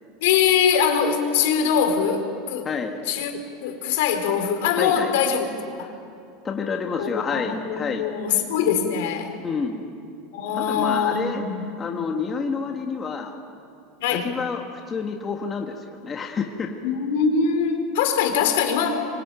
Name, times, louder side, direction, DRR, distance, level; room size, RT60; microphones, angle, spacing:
voice 1, 0.2-2.7 3.1-5.4 5.8-5.9 7.0-9.4 10.3-11.7 14.0-14.4 16.8-19.0, left 7 dB, 75° left, 5 dB, 4.3 m, -23 dB
voice 2, 2.6-3.0 4.8-5.1 6.4-8.1 9.4-9.9 10.5-11.4 11.8-13.4 14.1-16.7, left 5 dB, 20° left, 2 dB, 1.6 m, -29 dB
24.5 x 24.5 x 9.2 m, 2.7 s
supercardioid pair, 165°, 0 cm